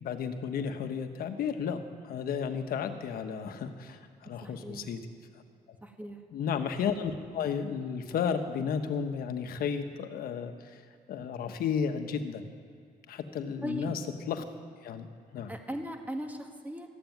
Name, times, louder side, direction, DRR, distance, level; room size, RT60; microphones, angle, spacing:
voice 1, 0.0-5.0 6.3-10.8 11.1-12.5 13.1-14.4 14.8-15.1 15.3-15.5, left 7 dB, 75° left, 8 dB, 1.2 m, -33 dB
voice 2, 4.4-4.9 5.8-6.2 13.6-14.0 15.5-16.9, equal, 10° right, 4 dB, 1.8 m, -38 dB
13.5 x 9.0 x 9.4 m, 2.3 s
cardioid pair, 90°, 15 cm